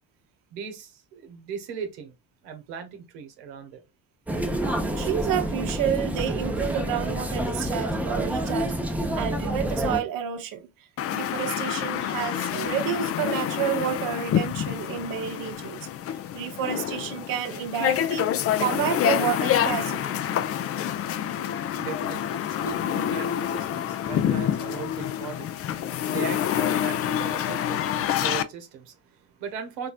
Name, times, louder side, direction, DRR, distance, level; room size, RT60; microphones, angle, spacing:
voice 1, 0.5-2.1 2.4-3.8 21.3-29.9, right 7 dB, 75° right, 0.9 m, -39 dB
sound 1, 4.3-10.0, right 1 dB, 5° right, 0.7 m, -28 dB
voice 2, 4.9-8.8 9.2-10.7 11.1-15.8 16.1-18.3 18.6-20.2, right 10 dB, 45° right, 0.8 m, -30 dB
sound 2, 11.0-28.4, left 10 dB, 35° left, 0.4 m, -27 dB
4.0 x 2.6 x 2.4 m
hypercardioid pair, 50°, 49 cm